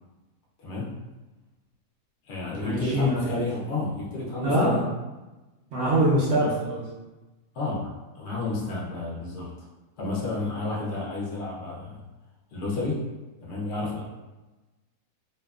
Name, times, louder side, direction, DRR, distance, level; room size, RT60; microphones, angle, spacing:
voice 1, 0.6-0.9 2.3-4.9 6.4-6.5 7.5-9.7 10.0-12.0 12.5-13.0 13.4-14.0, left 3 dB, 60° left, -3 dB, 0.7 m, -31 dB
voice 2, 2.6-3.3 4.4-4.8 5.7-6.8, right 1 dB, 70° right, -6 dB, 0.6 m, -23 dB
2.7 x 2.2 x 2.3 m, 1.1 s
omnidirectional pair, 1.7 m